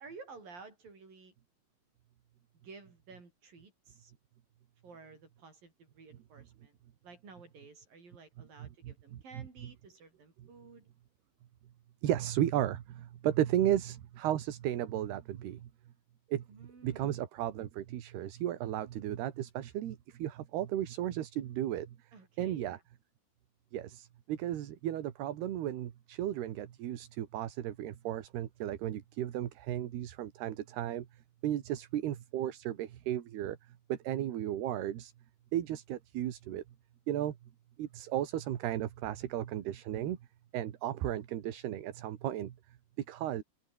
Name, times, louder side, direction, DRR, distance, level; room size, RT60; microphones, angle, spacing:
voice 1, 0.0-1.3 2.6-4.1 4.8-6.8 7.0-10.9 16.5-17.2 22.1-22.8, right 4 dB, 50° right, 8.8 m, -53 dB
voice 2, 8.6-8.9 9.4-9.5 12.0-15.7 16.3-16.5 16.8-22.0 22.4-22.8 23.7-31.1 31.4-33.6 33.9-35.1 35.5-36.6 37.1-37.4 37.8-40.2 40.5-42.6 43.1-43.4, right 12 dB, 65° right, 3.6 m, -34 dB
omnidirectional pair, 5.2 m